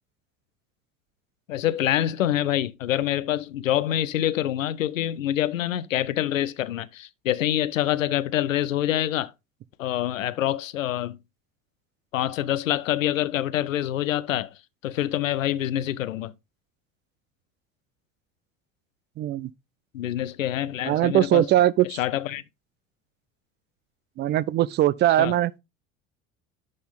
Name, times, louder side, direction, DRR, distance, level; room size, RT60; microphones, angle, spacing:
voice 1, 1.5-9.3 9.8-11.2 12.1-16.3 19.9-21.5 21.8-22.4 25.2-25.4, left 12 dB, 85° left, 0.6 m, -26 dB
voice 2, 19.2-19.5 20.8-22.0 24.2-25.5, right 13 dB, 30° right, 0.4 m, -21 dB
11.5 x 4.3 x 3.5 m
hypercardioid pair, 70°, 39 cm